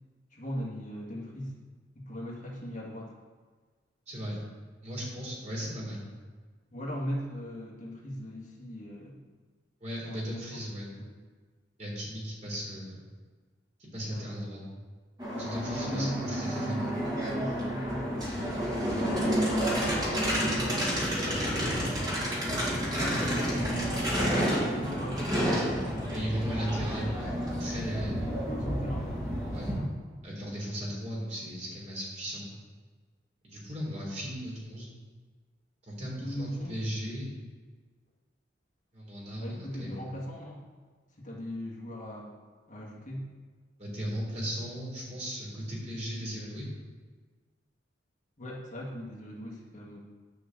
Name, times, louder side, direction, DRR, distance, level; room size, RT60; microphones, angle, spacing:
voice 1, 0.3-1.6 2.0-3.1 6.7-9.2 10.0-10.2 10.5-10.6 11.0-11.1 14.0-14.3 15.9-16.2 16.5-18.3 19.5-21.9 23.2-24.0 24.6-26.1 28.1-29.1 29.6-29.9 36.2-36.8 39.4-40.6 41.2-42.3 42.7-43.3 48.4-50.0, equal, 45° left, -4 dB, 2.1 m, -39 dB
voice 2, 4.1-4.4 4.8-6.1 9.8-10.9 11.8-13.0 13.8-14.6 15.4-16.8 26.1-28.1 29.5-29.7 30.2-32.5 33.4-34.9 35.9-37.3 38.9-40.0 43.8-46.7, equal, 40° right, -4 dB, 3.4 m, -36 dB
sound 1, 15.2-29.8, equal, 20° right, 2.2 m, -30 dB
9.9 x 5.4 x 7.6 m, 1.4 s
head